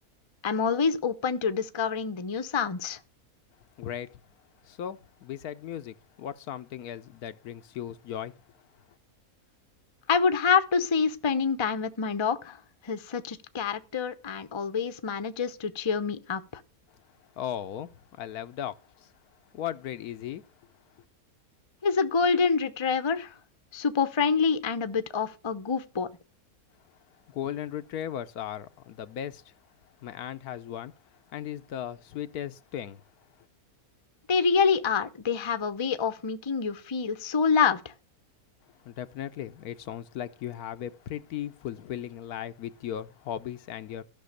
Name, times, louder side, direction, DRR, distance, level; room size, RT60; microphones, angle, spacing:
voice 1, 0.4-3.0 10.1-16.6 21.8-23.4 23.7-26.1 34.3-37.9, left 5 dB, 25° left, 0.6 m, -27 dB
voice 2, 3.8-4.2 4.6-8.3 17.4-19.1 19.5-20.4 27.3-29.5 30.0-30.9 31.3-33.0 38.8-44.0, left 10 dB, 80° left, 1.2 m, -37 dB
14.0 x 6.2 x 6.4 m
omnidirectional pair, 1.6 m